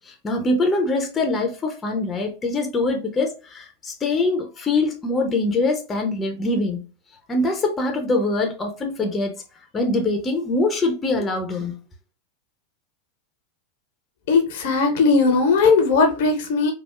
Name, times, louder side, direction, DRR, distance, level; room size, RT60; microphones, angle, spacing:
voice 1, 0.1-6.8 7.3-9.3 9.7-11.8, left 2 dB, 20° left, 0.7 m, -23 dB
voice 2, 14.3-16.7, left 4 dB, 55° left, 0.7 m, -18 dB
3.4 x 2.3 x 2.4 m
figure-of-eight pair, 90°, 0 cm